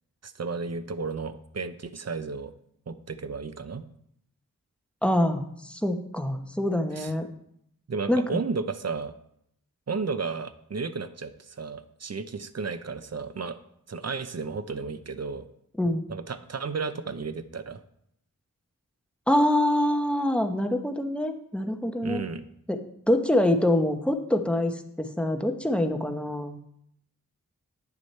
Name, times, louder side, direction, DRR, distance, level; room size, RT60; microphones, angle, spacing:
voice 1, 0.2-2.5 2.9-3.9 6.9-7.1 7.9-9.1 9.9-13.6 13.9-15.5 16.1-17.8 22.0-22.4, right 4 dB, 50° right, 12 dB, 0.6 m, -33 dB
voice 2, 5.0-7.3 8.1-8.4 15.8-16.0 19.3-22.2 22.7-22.8 23.1-26.6, left 1 dB, 5° left, 5 dB, 0.9 m, -25 dB
9.4 x 6.2 x 4.3 m, 0.73 s
wide cardioid pair, 50°, 34 cm